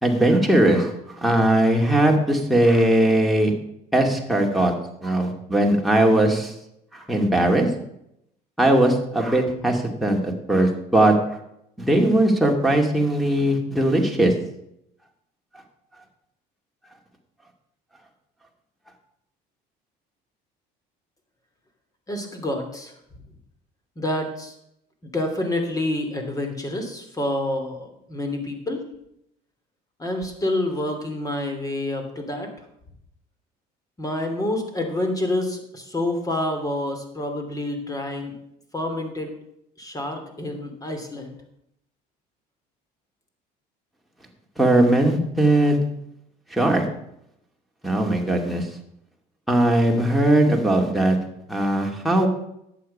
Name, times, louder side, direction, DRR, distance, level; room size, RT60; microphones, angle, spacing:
voice 1, 0.0-3.5 3.9-4.7 5.0-6.5 6.9-7.7 8.6-11.2 11.8-14.3 44.6-45.8 46.5-46.9 47.8-48.7 49.5-51.2 51.5-52.3, right 1 dB, ahead, 3 dB, 2.3 m, -19 dB
voice 2, 22.1-23.0 24.0-24.5 25.0-28.8 30.0-32.5 34.0-38.3 38.7-39.3 39.8-41.4, left 1 dB, 20° left, 5 dB, 2.9 m, -28 dB
11.0 x 8.7 x 5.4 m, 0.78 s
cardioid pair, 115°, 19 cm